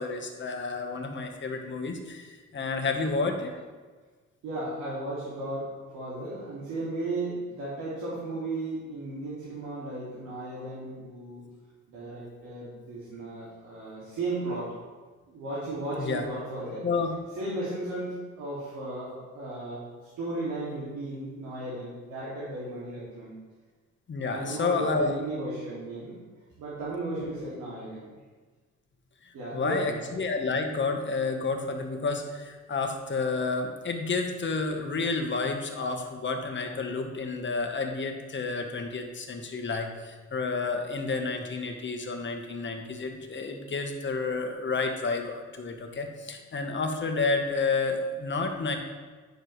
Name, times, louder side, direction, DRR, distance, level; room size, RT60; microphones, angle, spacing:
voice 1, 0.0-3.5 16.0-16.2 16.8-17.1 24.1-25.1 27.2-27.3 29.2-48.8, left 4 dB, 40° left, 4 dB, 1.2 m, -30 dB
voice 2, 4.4-11.5 11.9-14.8 15.3-16.9 17.4-19.9 20.2-23.3 24.3-26.2 26.6-28.1 29.3-30.1, right 2 dB, 85° right, -8 dB, 2.3 m, -35 dB
10.0 x 6.5 x 3.2 m, 1.4 s
cardioid pair, 90°, 30 cm